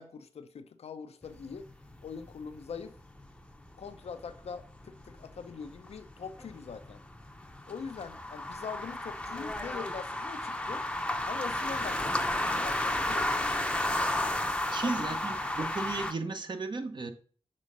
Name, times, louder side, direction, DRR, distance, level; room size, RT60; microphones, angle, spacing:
voice 1, 0.0-1.7 2.0-2.9 3.8-7.0 7.7-10.8 11.2-13.3 14.8-15.2, left 6 dB, 90° left, 0.7 m, -42 dB
sound 1, 1.2-16.1, left 1 dB, 10° left, 0.7 m, -33 dB
voice 2, 14.7-17.1, right 3 dB, 50° right, 1.1 m, -35 dB
6.4 x 3.7 x 5.3 m
wide cardioid pair, 75°, 10 cm